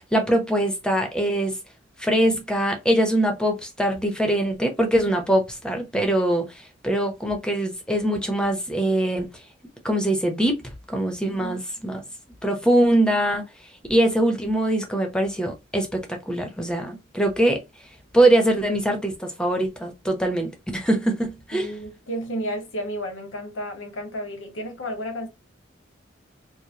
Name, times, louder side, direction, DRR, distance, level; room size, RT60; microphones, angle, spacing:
voice 1, 0.1-1.5 2.0-6.5 6.8-9.3 9.8-10.6 10.9-12.0 12.4-13.4 13.9-17.6 18.1-21.7, right 1 dB, 5° left, 0.8 m, -22 dB
voice 2, 11.3-11.6 21.5-25.3, equal, 85° left, 1.3 m, -32 dB
4.7 x 2.2 x 2.7 m
head